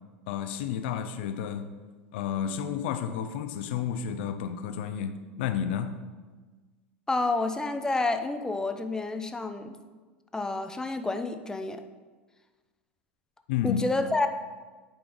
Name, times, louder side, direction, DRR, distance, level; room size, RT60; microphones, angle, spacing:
voice 1, 0.3-1.6 2.1-6.0 13.5-13.9, left 8 dB, 60° left, 9 dB, 0.6 m, -31 dB
voice 2, 7.1-9.7 10.3-11.8 13.6-14.3, left 3 dB, 10° left, 8 dB, 0.6 m, -29 dB
8.9 x 5.0 x 3.9 m, 1.3 s
figure-of-eight pair, 85°, 6 cm